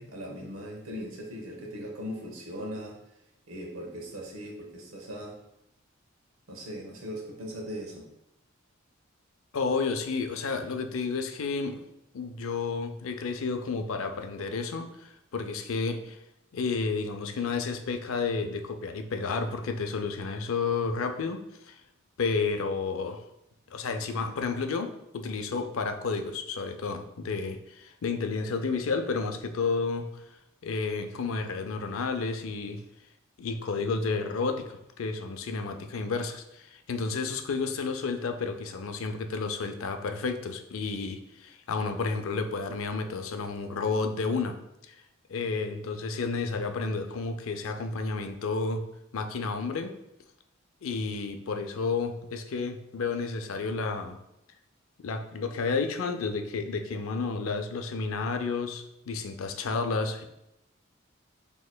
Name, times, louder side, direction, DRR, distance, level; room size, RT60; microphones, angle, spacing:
voice 1, 0.0-3.0 3.5-5.3 6.5-8.1, equal, 80° right, 0 dB, 1.0 m, -39 dB
voice 2, 9.5-11.8 12.1-16.2 16.5-21.8 22.2-23.2 23.7-30.2 30.6-32.8 33.4-44.5 44.9-45.0 45.3-48.8 49.1-49.9 50.8-54.2 55.0-60.2, left 4 dB, 70° left, 6 dB, 0.5 m, -31 dB
6.3 x 2.9 x 2.2 m, 0.84 s
head